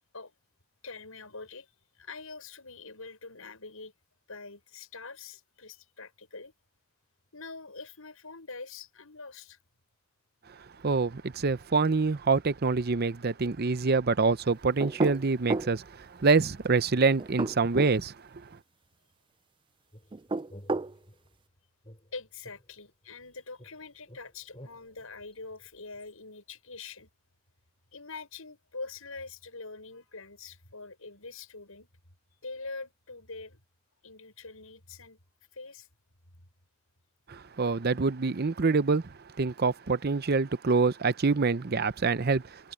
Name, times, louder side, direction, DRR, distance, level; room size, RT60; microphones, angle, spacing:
voice 1, 0.8-1.7 1.9-3.9 4.3-6.5 7.3-9.6 22.1-27.1 27.9-31.9 32.3-33.6 34.0-35.2 35.5-35.9, left 3 dB, 85° left, 6.6 m, -44 dB
voice 2, 10.8-15.8 16.2-18.1 37.3-39.0 39.4-42.4, right 4 dB, 50° right, 0.7 m, -25 dB
sound 1, 14.8-15.7 17.2-18.0 20.1-20.9, right 3 dB, 25° right, 0.4 m, -31 dB
sound 2, 19.9-21.4 21.8-23.3 23.6-26.1, equal, 25° left, 5.3 m, -53 dB
head